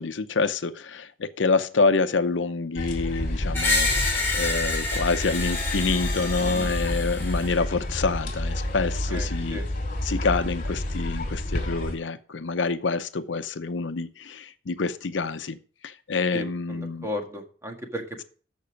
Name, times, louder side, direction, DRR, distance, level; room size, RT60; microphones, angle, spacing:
voice 1, 0.0-3.9 4.3-9.6 10.1-15.6 15.8-17.1, left 4 dB, 85° left, 11 dB, 0.7 m, -27 dB
sound 1, 2.8-12.0, left 1 dB, 50° left, 2.6 m, -29 dB
Screech, 3.5-7.5, left 3 dB, 15° left, 4.1 m, -28 dB
voice 2, 9.1-9.7 16.3-18.2, left 1 dB, 15° right, 3 dB, 1.7 m, -35 dB
13.5 x 5.4 x 5.1 m, 0.41 s
head